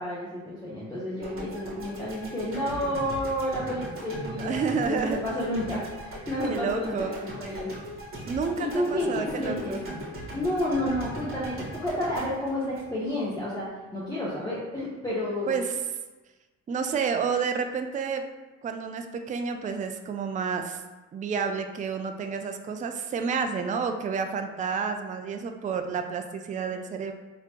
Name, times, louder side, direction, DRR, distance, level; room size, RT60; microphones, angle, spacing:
voice 1, 0.0-7.7 8.6-9.8 10.3-15.6, left 1 dB, 15° left, -8 dB, 0.9 m, -30 dB
sound 1, 1.2-13.4, equal, 45° right, 1.4 m, -39 dB
voice 2, 4.4-5.2 6.5-7.1 8.3-9.8 15.5-15.8 16.7-18.2 18.6-20.8 21.1-27.1, right 5 dB, 25° right, 6 dB, 0.3 m, -30 dB
3.9 x 2.9 x 2.9 m, 1.2 s
cardioid pair, 90°, 30 cm